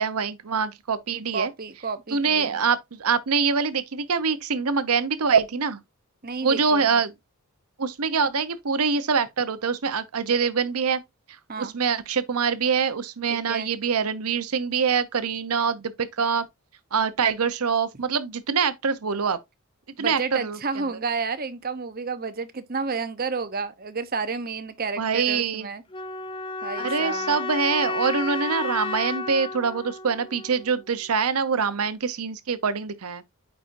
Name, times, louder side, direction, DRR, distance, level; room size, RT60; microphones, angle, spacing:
voice 1, 0.0-1.5 2.1-5.8 6.4-7.1 7.8-11.0 11.6-16.5 16.9-19.4 20.0-20.9 25.0-25.7 26.8-33.2, right 5 dB, 85° right, 0.8 m, -24 dB
voice 2, 1.3-2.6 6.2-7.0 11.5-11.7 13.3-13.7 20.0-25.8 26.6-27.4, right 4 dB, 40° right, 0.8 m, -31 dB
sound 1, 25.9-30.9, left 3 dB, 20° left, 0.6 m, -32 dB
8.8 x 4.3 x 2.6 m
head